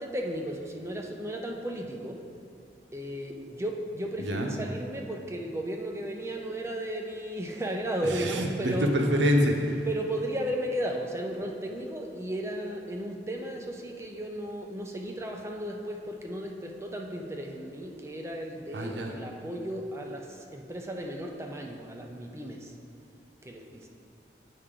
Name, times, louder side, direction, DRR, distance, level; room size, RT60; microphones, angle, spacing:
voice 1, 0.0-2.2 2.9-9.0 9.8-22.7 23.4-23.9, right 1 dB, 15° right, 1 dB, 0.5 m, -35 dB
voice 2, 8.2-9.8 18.7-19.1, equal, 85° right, 2 dB, 0.8 m, -26 dB
8.3 x 5.7 x 3.7 m, 2.5 s
head